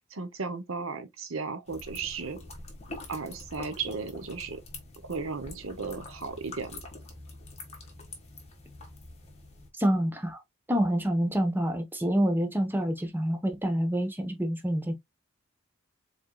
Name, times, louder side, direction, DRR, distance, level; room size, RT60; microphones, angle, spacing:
voice 1, 0.1-2.4 3.1-4.6 5.1-6.8, right 4 dB, 65° right, 0.9 m, -35 dB
sound 1, 1.7-9.7, left 2 dB, 30° left, 1.8 m, -45 dB
voice 2, 9.8-10.4 10.7-14.9, equal, 10° right, 1.0 m, -27 dB
5.0 x 4.4 x 2.3 m
head